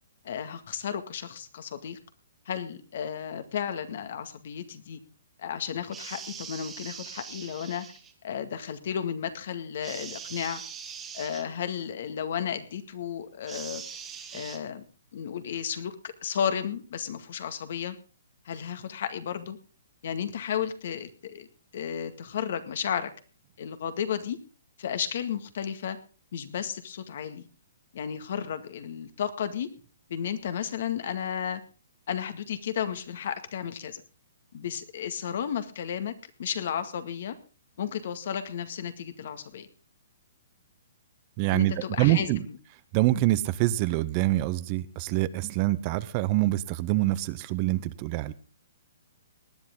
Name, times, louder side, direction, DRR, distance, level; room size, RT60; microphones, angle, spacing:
voice 1, 0.2-2.0 2.5-5.0 5.4-7.9 8.2-10.6 11.1-13.8 14.3-14.8 15.1-18.0 18.5-19.6 20.0-21.5 21.7-23.1 23.6-24.4 24.8-26.0 26.3-27.5 27.9-29.7 30.1-31.6 32.1-34.0 34.5-36.1 36.4-37.4 37.8-39.7 41.5-42.3, left 8 dB, 60° left, 10 dB, 1.9 m, -33 dB
sound 1, 5.9-8.1 9.8-11.5 13.5-14.6, right 7 dB, 15° right, 1.6 m, -42 dB
voice 2, 41.4-42.5 42.9-48.3, right 16 dB, 35° right, 16 dB, 0.7 m, -25 dB
19.0 x 10.5 x 3.8 m, 0.34 s
hypercardioid pair, 150°, 0 cm